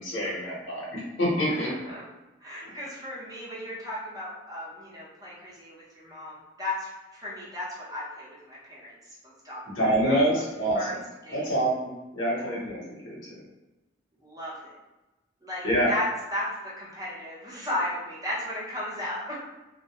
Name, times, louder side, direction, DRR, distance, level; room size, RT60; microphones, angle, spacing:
voice 1, 0.0-1.7 2.7-2.8 9.7-11.0 11.3-13.2 15.6-15.9, right 1 dB, 80° left, -5 dB, 0.9 m, -26 dB
voice 2, 1.5-2.0 2.4-8.9 9.2-9.6 10.1-10.2 10.7-10.9 11.2-11.5 12.3-12.4 14.2-14.7 15.4-19.4, left 1 dB, 20° right, -7 dB, 0.8 m, -35 dB
2.1 x 2.1 x 2.8 m, 1.1 s
head